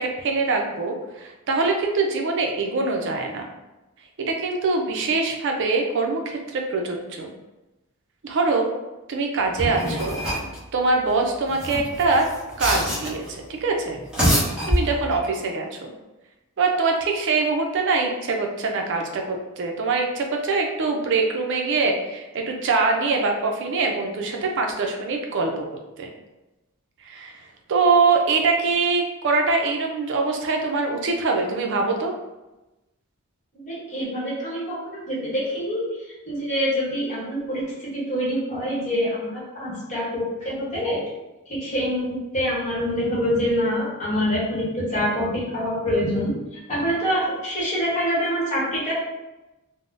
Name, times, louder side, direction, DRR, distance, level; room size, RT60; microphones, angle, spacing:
voice 1, 0.0-3.5 4.2-7.3 8.2-8.7 9.1-10.2 10.7-12.3 12.6-14.0 14.7-15.9 16.6-25.5 26.0-26.1 27.0-27.3 27.7-32.1, right 3 dB, 55° right, 2 dB, 0.4 m, -23 dB
sound 1, 9.6-10.6 11.5-13.3 13.9-15.3, equal, 5° right, 0.8 m, -25 dB
voice 2, 33.5-41.0 41.5-48.9, equal, 35° left, -6 dB, 0.9 m, -26 dB
3.5 x 2.0 x 2.5 m, 1.0 s
head